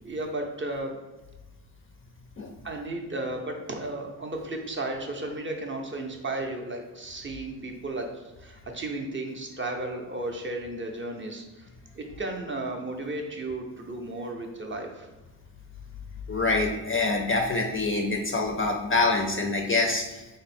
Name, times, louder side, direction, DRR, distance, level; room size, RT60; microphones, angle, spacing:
voice 1, 0.0-0.9 2.6-11.7 11.9-15.1, right 2 dB, 30° right, 2 dB, 0.5 m, -34 dB
voice 2, 16.3-20.3, left 3 dB, 30° left, 2 dB, 0.4 m, -25 dB
3.6 x 2.0 x 4.1 m, 1.1 s
cardioid pair, 100°, 42 cm